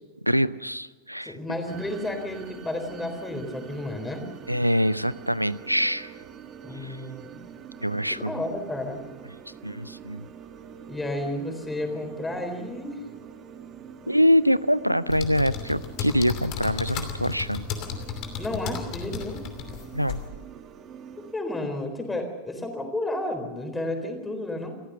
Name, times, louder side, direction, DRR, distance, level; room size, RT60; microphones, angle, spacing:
voice 1, 0.2-1.4 4.5-6.1 6.8-7.0 7.8-8.3 9.6-10.3 14.1-17.7 19.9-20.2, equal, 90° right, 18 dB, 0.6 m, -24 dB
voice 2, 1.2-4.3 6.6-7.4 8.1-9.0 10.9-13.0 18.4-19.4 21.3-24.7, left 1 dB, 10° left, 5 dB, 4.0 m, -32 dB
sound 1, 1.7-21.3, right 8 dB, 30° right, 1.7 m, -45 dB
sound 2, 15.1-20.3, left 7 dB, 40° left, 2.8 m, -34 dB
28.5 x 14.5 x 6.8 m, 1.3 s
figure-of-eight pair, 90°, 0 cm